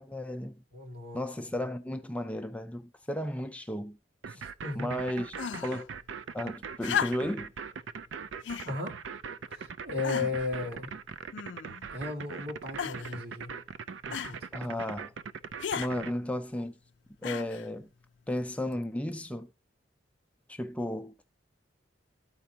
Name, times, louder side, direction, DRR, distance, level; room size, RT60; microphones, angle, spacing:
voice 1, 0.0-0.5 1.1-4.0 4.3-4.4 4.7-5.9 6.3-7.5 10.2-10.3 14.5-15.1 15.8-16.8 17.2-17.9 18.3-19.5 20.5-21.1, left 1 dB, 5° left, 0.4 m, -34 dB
voice 2, 0.7-1.2 4.6-5.0 8.6-9.0 9.5-10.9 11.9-13.6 14.1-14.8, left 3 dB, 60° right, 2.4 m, -35 dB
sound 1, 4.2-16.1, right 6 dB, 90° right, 0.5 m, -40 dB
sound 2, 5.3-5.8 6.8-7.5 8.4-8.7 9.5-9.6 10.0-10.5 11.3-11.9 12.8-13.2 14.1-14.4 15.6-15.9 17.2-17.7 18.7-18.8, left 8 dB, 75° left, 0.4 m, -34 dB
13.5 x 4.6 x 2.8 m
head